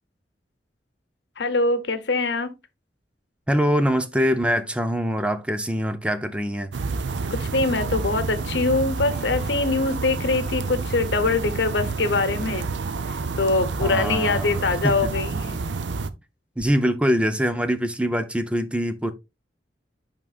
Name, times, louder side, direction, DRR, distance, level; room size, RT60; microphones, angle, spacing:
voice 1, 1.4-2.5 7.3-12.6 13.1-15.6, left 3 dB, 70° left, 0.9 m, -23 dB
voice 2, 3.5-6.7 13.8-15.1 16.6-19.1, equal, 5° right, 0.5 m, -24 dB
sound 1, 6.7-16.1, right 4 dB, 85° right, 0.6 m, -29 dB
11.0 x 3.7 x 2.4 m
head